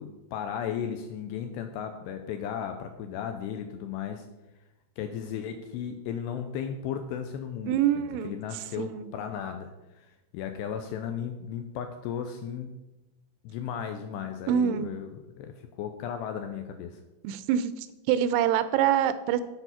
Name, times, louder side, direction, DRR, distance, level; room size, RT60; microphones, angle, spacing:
voice 1, 0.0-4.3 5.0-10.1 10.3-12.7 13.4-17.0, left 8 dB, 85° left, 6 dB, 2.5 m, -35 dB
voice 2, 7.7-8.3 8.8-9.1 14.5-14.9 17.2-19.4, right 10 dB, 85° right, 13 dB, 2.8 m, -25 dB
11.5 x 4.8 x 5.6 m, 1.0 s
omnidirectional pair, 5.4 m